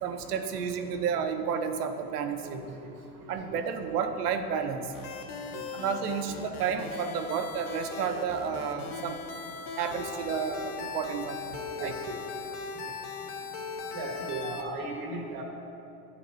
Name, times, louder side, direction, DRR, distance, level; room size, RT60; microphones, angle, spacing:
voice 1, 0.0-2.8 3.3-4.9 5.7-9.2 9.8-11.9 12.8-12.9, right 6 dB, 75° right, 8 dB, 0.7 m, -31 dB
sound 1, 4.9-14.7, left 5 dB, 70° left, 0.9 m, -39 dB
voice 2, 11.8-12.1 13.9-15.4, right 2 dB, 50° right, 0 dB, 1.5 m, -36 dB
12.0 x 4.1 x 2.6 m, 2.8 s
hypercardioid pair, 85°, 47 cm